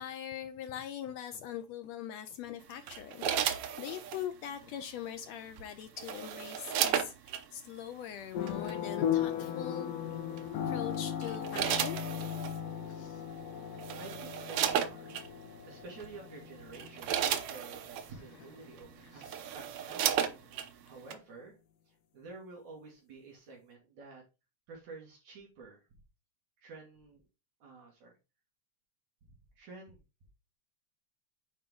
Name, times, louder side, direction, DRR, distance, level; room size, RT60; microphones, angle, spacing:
voice 1, 0.0-9.9 10.7-12.0 12.9-13.2 16.8-16.9 18.1-18.7 19.1-19.5 20.0-20.5, left 10 dB, 85° left, 1.5 m, -42 dB
sound 1, 2.9-4.2 5.6-7.4 8.5-8.7 10.4-10.7 11.2-12.6 13.4-13.5 13.8-15.3 16.0-16.2 16.6-18.1 18.8-18.9 19.2-20.7 21.1-21.2, right 9 dB, 90° right, 1.3 m, -33 dB
sound 2, 8.3-19.1, left 9 dB, 65° left, 1.8 m, -37 dB
voice 2, 13.3-21.6 21.9-24.2 24.7-25.9 26.6-27.2 27.6-28.2 29.3-30.0, right 3 dB, 65° right, 3.3 m, -51 dB
8.6 x 4.4 x 3.7 m
omnidirectional pair, 3.7 m